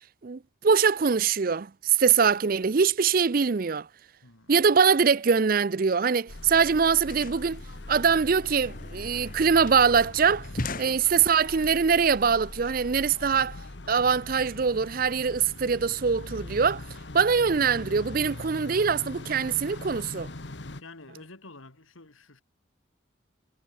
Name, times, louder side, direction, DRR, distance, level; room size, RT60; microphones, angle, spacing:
voice 1, 0.2-3.9 4.5-7.6 7.9-10.5 10.8-13.6 13.9-16.8 17.1-20.3, right 6 dB, 45° right, 0.5 m, -23 dB
voice 2, 4.2-4.5 20.8-22.4, left 2 dB, 85° left, 2.8 m, -48 dB
sound 1, 6.2-6.3 6.5-11.6, left 2 dB, 45° left, 2.1 m, -40 dB
sound 2, 6.3-20.8, left 2 dB, 60° left, 1.3 m, -41 dB
head